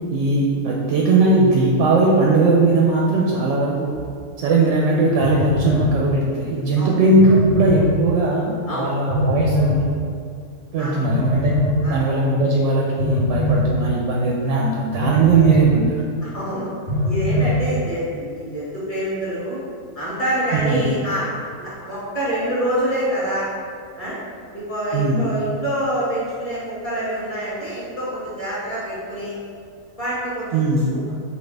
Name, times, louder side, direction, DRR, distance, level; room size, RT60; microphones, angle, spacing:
voice 1, 0.1-4.0 4.4-10.0 10.7-16.0 20.5-20.9 24.9-25.3 30.5-30.9, right 2 dB, 65° right, -2 dB, 0.8 m, -19 dB
Telephone, 3.9-4.0 5.2-5.9 7.2-7.9 9.1-9.8 11.1-11.8 13.0-13.7 15.0-15.7 16.9-17.6, left 1 dB, 85° left, 1.5 m, -21 dB
voice 2, 16.2-16.7 17.0-19.6 19.9-21.3 21.6-23.5 24.0-24.2 24.5-29.3 30.0-31.0, right 1 dB, 25° left, -10 dB, 1.6 m, -26 dB
5.8 x 2.3 x 3.4 m, 2.3 s
omnidirectional pair, 1.6 m